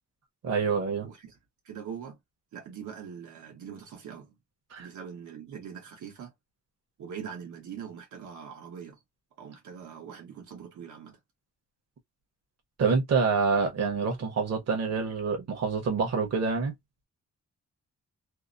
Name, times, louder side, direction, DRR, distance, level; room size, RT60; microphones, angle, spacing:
voice 1, 0.4-1.1 4.7-4.9 12.8-16.7, right 5 dB, 60° right, 1.0 m, -27 dB
voice 2, 1.0-1.4 1.6-2.2 2.5-4.4 4.8-6.3 7.0-9.0 9.4-11.2, right 7 dB, 85° right, 1.0 m, -42 dB
2.8 x 2.0 x 2.4 m
wide cardioid pair, 175°, 29 cm